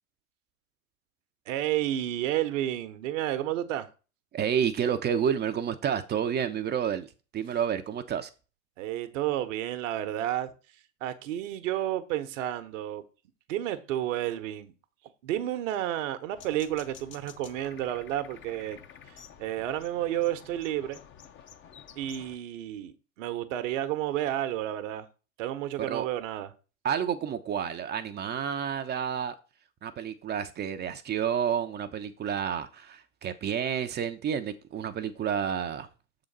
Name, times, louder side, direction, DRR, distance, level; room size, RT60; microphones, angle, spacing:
voice 1, 1.5-3.9 8.8-10.5 11.0-13.0 13.5-14.7 15.2-18.8 19.1-21.0 22.0-25.1 25.4-26.5, right 12 dB, 60° right, 1.0 m, -31 dB
voice 2, 4.3-8.3 25.8-26.1 26.8-29.3 29.8-35.9, right 8 dB, 25° right, 0.6 m, -30 dB
sound 1, 16.3-22.4, left 8 dB, 30° left, 0.7 m, -50 dB
7.0 x 3.9 x 5.3 m
hypercardioid pair, 85°, 41 cm